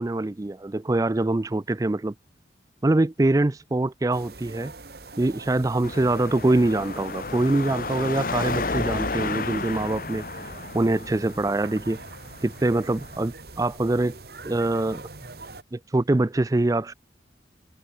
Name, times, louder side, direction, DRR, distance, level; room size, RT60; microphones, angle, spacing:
voice 1, 0.0-2.1 2.8-4.7 5.2-10.2 10.7-12.0 12.4-14.2 14.4-15.0 15.7-16.9, right 2 dB, 20° right, 0.4 m, -24 dB
sound 1, 4.1-15.6, right 3 dB, 60° right, 2.4 m, -43 dB
Car passing by / Traffic noise roadway noise / Engine, 5.8-13.2, left 3 dB, 50° left, 1.3 m, -32 dB
head